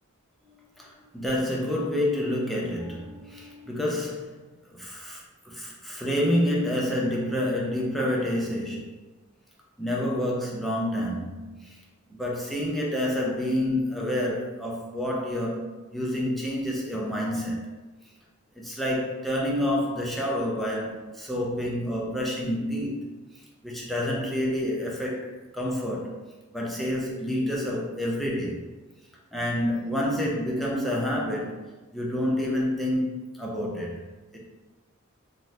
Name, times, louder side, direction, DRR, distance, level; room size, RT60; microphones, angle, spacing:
voice 1, 0.8-4.4 4.7-8.9 9.8-11.7 12.1-17.6 18.6-23.1 23.6-26.1 26.5-28.6 29.3-31.6 31.9-33.1 33.4-34.0 34.3-34.4, left 1 dB, ahead, -4 dB, 0.4 m, -28 dB
2.6 x 2.0 x 3.2 m, 1.2 s
head